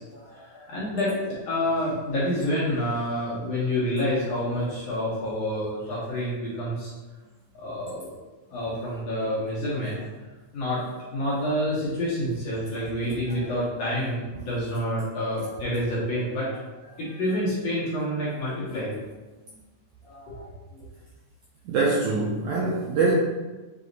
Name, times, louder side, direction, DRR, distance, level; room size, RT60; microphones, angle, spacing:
voice 1, 0.0-6.9 7.5-8.2 8.5-10.0 10.5-19.0 19.5-19.6 20.0-20.9, left 1 dB, 65° left, -8 dB, 1.7 m, -28 dB
voice 2, 21.7-23.1, right 3 dB, 90° right, -4 dB, 1.6 m, -24 dB
6.1 x 2.7 x 2.6 m, 1.2 s
omnidirectional pair, 3.8 m